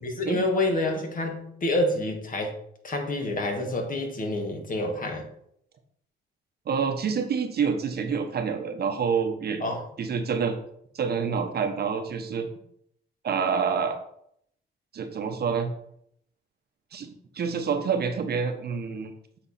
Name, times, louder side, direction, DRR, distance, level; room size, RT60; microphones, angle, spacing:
voice 1, 0.0-2.5 2.8-5.3 9.6-9.8, left 2 dB, 45° left, 3 dB, 1.7 m, -28 dB
voice 2, 6.7-9.6 10.0-10.6 10.9-12.5 13.2-14.0 14.9-15.7 16.9-19.1, right 6 dB, 55° right, 5 dB, 1.0 m, -27 dB
7.5 x 4.3 x 4.2 m, 0.70 s
cardioid pair, 90°, 20 cm